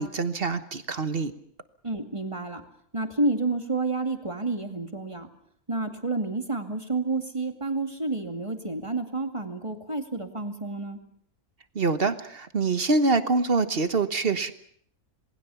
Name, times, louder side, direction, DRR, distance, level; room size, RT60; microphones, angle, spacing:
voice 1, 0.0-1.3 11.7-14.5, right 3 dB, 40° right, 11 dB, 1.3 m, -25 dB
voice 2, 1.8-2.6 2.9-5.3 5.7-11.0, right 2 dB, 20° right, 5 dB, 2.3 m, -29 dB
27.5 x 20.0 x 7.0 m, 0.64 s
omnidirectional pair, 1.5 m